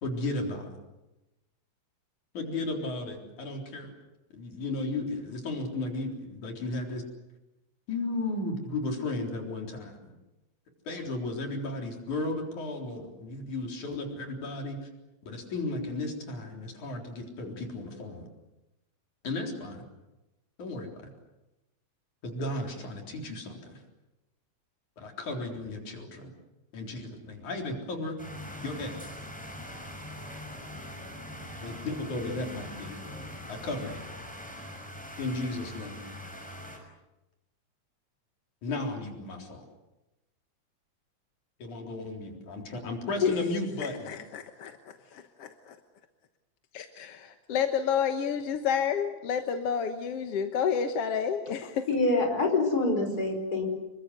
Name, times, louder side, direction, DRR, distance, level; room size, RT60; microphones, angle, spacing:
voice 1, 0.0-0.7 2.3-3.9 4.3-7.0 7.9-10.1 10.9-14.9 15.3-18.3 19.2-19.9 20.6-21.1 22.2-23.8 25.0-26.3 26.7-28.2 28.6-29.0 31.6-33.0 33.5-34.0 35.2-36.1 38.6-39.7 41.6-44.1, left 2 dB, 80° left, 2 dB, 5.3 m, -34 dB
sound 1, 28.2-36.8, left 1 dB, ahead, 5.9 m, -42 dB
voice 2, 43.8-45.8 46.7-51.9, left 7 dB, 60° left, 6 dB, 2.0 m, -30 dB
voice 3, 51.9-53.7, left 2 dB, 30° left, 3 dB, 5.4 m, -26 dB
28.0 x 23.0 x 8.1 m, 1.0 s
omnidirectional pair, 3.3 m